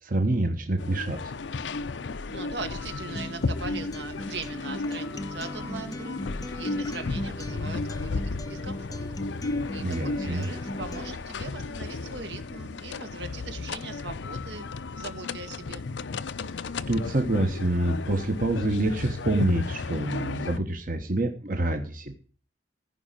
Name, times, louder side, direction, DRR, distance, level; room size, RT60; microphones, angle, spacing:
voice 1, 0.0-1.3 9.8-10.5 16.9-22.1, right 1 dB, 50° right, 4 dB, 1.3 m, -27 dB
sound 1, 0.8-20.6, left 3 dB, 90° left, 0.6 m, -34 dB
voice 2, 2.3-6.2 6.5-9.0 9.7-14.7 14.9-15.9, right 3 dB, 75° right, 7 dB, 1.9 m, -40 dB
Acoustic guitar, 3.2-11.1, left 1 dB, 20° left, 0.6 m, -38 dB
15.5 x 5.3 x 9.0 m, 0.42 s
head